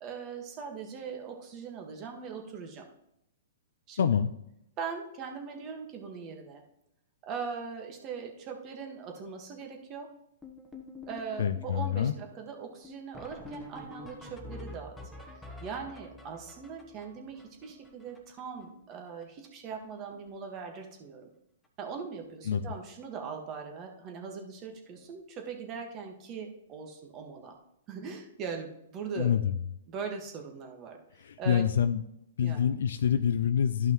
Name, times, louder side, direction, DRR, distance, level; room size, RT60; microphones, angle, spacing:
voice 1, 0.0-2.8 3.9-4.1 4.8-6.6 7.2-10.1 11.1-15.0 15.6-21.3 21.8-27.6 27.9-29.3 29.9-31.0 31.4-31.7 32.4-32.7, right 6 dB, 30° right, 3 dB, 1.6 m, -40 dB
voice 2, 4.0-4.3 11.4-12.1 22.4-22.7 29.2-29.5 31.1-32.0 32.4-33.9, left 8 dB, 75° left, 10 dB, 0.4 m, -26 dB
sound 1, 10.4-18.6 18.9-19.0 19.2-19.5 19.7-20.3 20.6-20.8 21.6-21.7 22.2-22.3 22.5-22.7 25.0-25.1 27.4-27.5, left 2 dB, 5° left, 1.3 m, -47 dB
12.5 x 5.6 x 3.1 m, 0.80 s
hypercardioid pair, 130°, 0 cm